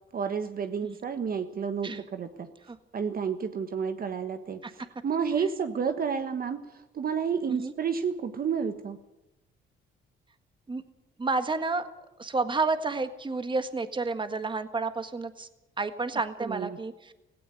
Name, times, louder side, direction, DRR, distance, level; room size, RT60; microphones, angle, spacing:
voice 1, 0.1-2.5 2.9-9.0 16.4-16.8, right 6 dB, 45° right, 8 dB, 1.4 m, -31 dB
voice 2, 11.2-11.9 12.2-15.5 15.8-17.1, right 3 dB, 25° right, 9 dB, 1.7 m, -30 dB
17.0 x 16.5 x 9.7 m, 0.94 s
cardioid pair, 90°, 20 cm